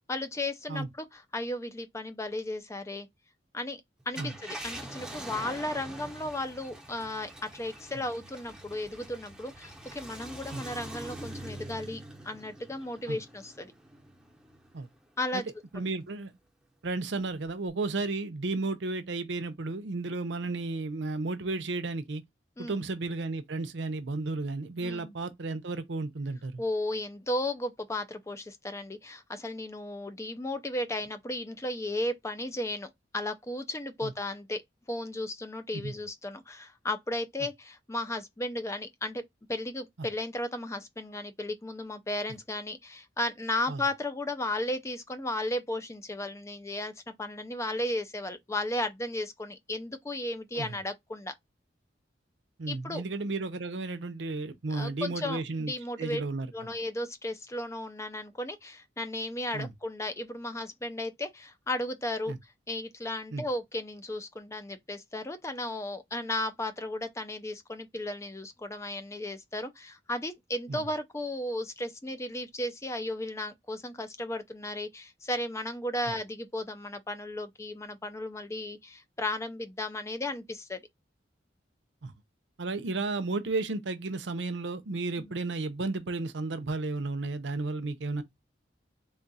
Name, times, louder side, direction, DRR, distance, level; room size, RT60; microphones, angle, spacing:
voice 1, 0.1-3.1 3.5-3.8 4.1-12.0 12.2-13.7 15.2-15.4 15.7-15.9 22.6-22.9 24.8-25.1 26.6-34.6 34.9-39.2 39.5-51.3 52.7-53.0 54.7-56.2 56.5-62.3 62.7-80.8 85.2-85.4, left 1 dB, 15° left, 0.4 m, -35 dB
Car, 4.0-14.8 15.3-15.4 17.5-17.7, right 1 dB, 5° right, 0.8 m, -44 dB
voice 2, 15.7-16.3 16.8-22.2 22.6-26.6 34.0-34.1 35.7-35.9 43.7-43.8 50.6-50.8 52.6-55.7 56.0-56.5 59.5-59.7 62.3-62.4 63.3-63.4 70.7-70.9 82.0-82.1 82.6-88.2, right 3 dB, 80° right, 0.6 m, -33 dB
3.6 x 2.3 x 4.0 m
head